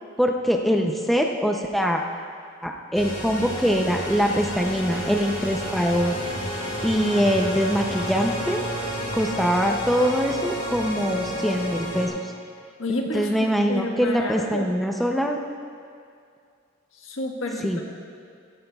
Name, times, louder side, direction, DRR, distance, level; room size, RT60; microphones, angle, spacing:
voice 1, 0.2-2.0 2.6-6.2 6.8-8.6 9.1-12.3 12.9-15.4 17.6-17.8, equal, ahead, 1 dB, 0.5 m, -23 dB
sound 1, 2.9-12.1, equal, 45° left, 2.5 m, -31 dB
voice 2, 12.8-14.7 17.0-17.8, left 1 dB, 80° left, 0 dB, 1.5 m, -30 dB
16.5 x 14.5 x 2.3 m, 2.2 s
head